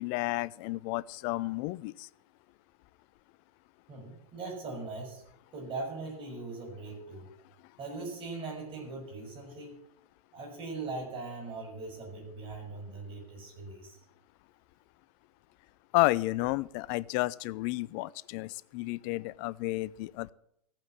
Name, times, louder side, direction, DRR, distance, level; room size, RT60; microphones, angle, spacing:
voice 1, 0.0-2.1 15.9-20.3, left 20 dB, 35° left, 21 dB, 0.5 m, -31 dB
voice 2, 3.9-5.2 5.5-7.3 7.8-9.8 10.3-14.0, right 3 dB, 25° right, 1 dB, 6.4 m, -40 dB
14.5 x 9.0 x 7.5 m, 0.75 s
figure-of-eight pair, 110°, 20 cm